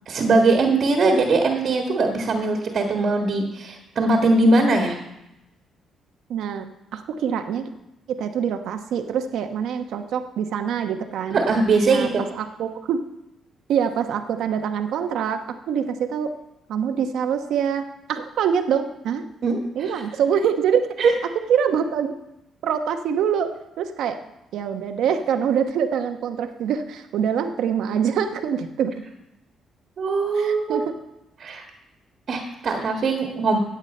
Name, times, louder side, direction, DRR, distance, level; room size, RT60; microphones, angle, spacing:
voice 1, 0.1-5.0 11.3-12.2 19.4-19.9 21.0-21.1 30.0-30.9 31.4-31.6 32.3-33.6, right 3 dB, 55° right, 2 dB, 1.7 m, -21 dB
voice 2, 6.3-6.7 6.9-7.6 8.1-11.4 11.9-12.1 12.3-13.0 13.7-15.4 15.7-16.3 16.7-19.2 19.8-20.9 21.5-22.1 22.6-24.2 24.5-28.9 30.3-30.8, right 8 dB, 80° right, 7 dB, 1.0 m, -24 dB
14.5 x 8.1 x 4.3 m, 0.89 s
cardioid pair, 90°, 0 cm